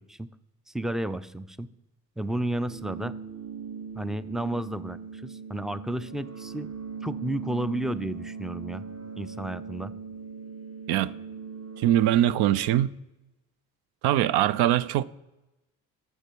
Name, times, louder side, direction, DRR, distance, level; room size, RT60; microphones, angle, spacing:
voice 1, 0.7-1.7 2.2-3.2 3.9-6.7 7.0-8.8 9.2-9.9, right 1 dB, ahead, 0.4 m, -32 dB
sound 1, 2.7-12.7, right 5 dB, 35° right, 0.8 m, -40 dB
voice 2, 11.8-12.9 14.0-15.0, right 12 dB, 75° right, 0.5 m, -22 dB
11.5 x 7.0 x 4.6 m
supercardioid pair, 65°, 39 cm